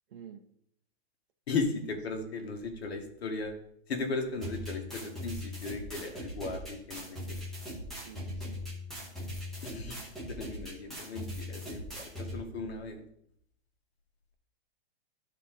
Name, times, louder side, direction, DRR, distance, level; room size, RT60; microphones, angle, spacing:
voice 1, 0.1-0.4 2.3-2.6 7.9-8.6, right 8 dB, 55° right, 5 dB, 0.7 m, -50 dB
voice 2, 1.5-3.5 3.9-7.4 9.6-13.1, left 3 dB, 70° left, 4 dB, 1.6 m, -36 dB
sound 1, 4.4-12.4, left 1 dB, ahead, 0.8 m, -40 dB
12.0 x 4.2 x 3.7 m, 0.72 s
hypercardioid pair, 175°, 32 cm